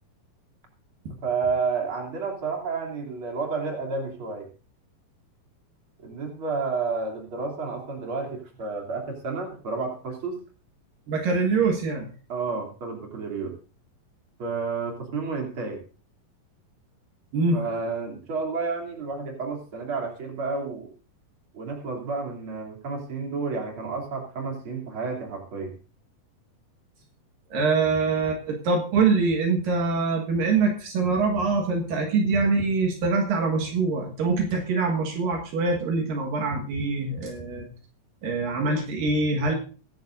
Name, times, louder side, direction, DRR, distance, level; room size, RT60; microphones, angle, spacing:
voice 1, 1.2-4.5 6.0-10.4 12.3-13.5 14.4-15.8 17.5-20.9 21.5-25.7, right 4 dB, 35° right, 1 dB, 3.5 m, -30 dB
voice 2, 11.1-12.1 17.3-17.6 27.5-37.7 38.2-39.5, right 4 dB, 70° right, 2 dB, 3.2 m, -24 dB
23.5 x 10.5 x 2.6 m, 0.37 s
omnidirectional pair, 4.2 m